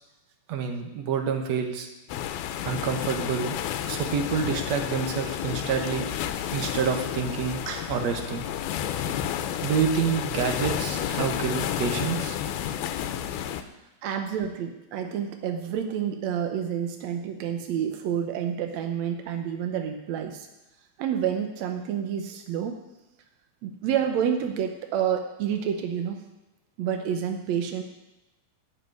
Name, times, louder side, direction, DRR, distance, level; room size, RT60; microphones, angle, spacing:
voice 1, 0.5-1.9 2.7-3.6 3.9-6.1 6.5-7.6 7.9-8.4 9.6-12.4, right 6 dB, 60° right, 5 dB, 2.0 m, -27 dB
sound 1, 2.1-13.6, left 10 dB, 90° left, 2.7 m, -31 dB
voice 2, 14.0-20.5 21.0-22.7 23.6-26.2 26.8-27.8, right 8 dB, 80° right, 5 dB, 1.6 m, -29 dB
15.0 x 6.2 x 9.4 m, 1.0 s
omnidirectional pair, 4.3 m